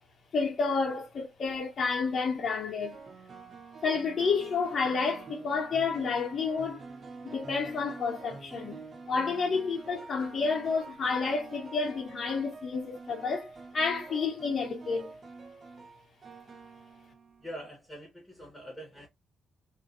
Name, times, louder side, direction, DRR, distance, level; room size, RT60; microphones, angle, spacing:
voice 1, 0.3-3.0 3.8-6.8 7.2-8.8 9.1-15.1, left 4 dB, 50° left, 0.7 m, -30 dB
sound 1, 1.2-1.6 2.8-17.7, right 4 dB, 45° right, 0.6 m, -47 dB
voice 2, 17.4-19.1, equal, 5° left, 1.1 m, -44 dB
2.5 x 2.5 x 2.4 m
cardioid pair, 90°, 0 cm